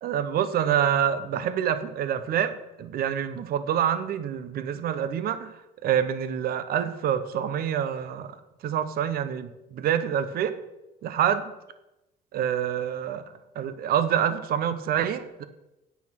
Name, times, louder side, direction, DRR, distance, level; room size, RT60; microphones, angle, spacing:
voice 1, 0.0-5.5 5.8-8.3 8.6-10.6 11.0-11.4 12.3-13.2 13.5-15.4, right 9 dB, 65° right, 12 dB, 0.9 m, -26 dB
9.3 x 8.6 x 6.0 m, 0.95 s
cardioid pair, 110°, 17 cm